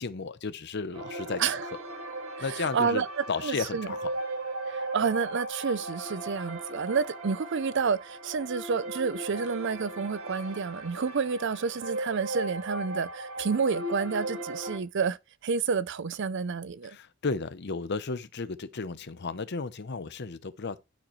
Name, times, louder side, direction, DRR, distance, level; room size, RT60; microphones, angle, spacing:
voice 1, 0.0-1.7 2.4-4.1 16.8-20.8, left 4 dB, 55° left, 0.7 m, -34 dB
sound 1, 0.9-14.8, right 2 dB, 90° right, 1.9 m, -37 dB
voice 2, 2.7-3.1 3.4-3.9 4.7-15.2 15.4-17.0, right 5 dB, 60° right, 0.5 m, -29 dB
12.5 x 5.1 x 3.1 m
head